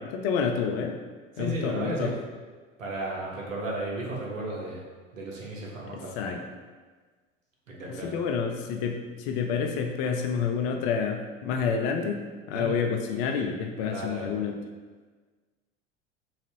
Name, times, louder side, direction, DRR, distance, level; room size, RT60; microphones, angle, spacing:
voice 1, 0.1-0.9 1.4-2.1 6.2-6.4 8.0-12.2 12.5-14.6, left 6 dB, 50° left, 4 dB, 0.5 m, -28 dB
voice 2, 1.3-2.1 2.8-4.8 5.1-6.4 7.7-8.1 12.5-12.7 13.9-14.3, right 2 dB, 85° right, -3 dB, 0.9 m, -34 dB
3.9 x 2.5 x 2.9 m, 1.4 s
figure-of-eight pair, 75°, 38 cm